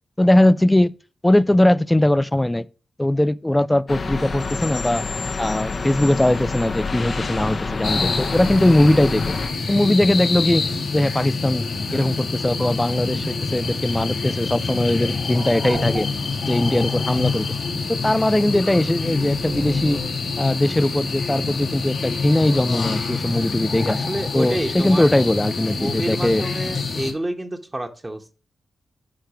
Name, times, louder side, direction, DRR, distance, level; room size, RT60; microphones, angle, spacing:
voice 1, 0.2-0.9 1.2-2.7 3.0-5.0 5.4-9.3 9.7-10.7 10.9-11.7 11.9-16.1 16.5-17.5 17.9-20.0 20.4-24.0 24.3-26.4, left 1 dB, 15° left, 0.5 m, -20 dB
sound 1, 3.9-9.5, left 4 dB, 55° left, 1.1 m, -28 dB
sound 2, 7.8-27.1, left 4 dB, 75° left, 2.5 m, -26 dB
sound 3, 13.7-14.0 15.0-16.5 16.8-17.0 17.4-17.7 18.4-20.1, right 4 dB, 70° right, 3.7 m, -36 dB
voice 2, 23.9-25.1 25.7-28.3, right 1 dB, 25° right, 1.3 m, -29 dB
11.5 x 4.6 x 3.0 m
cardioid pair, 50°, 0 cm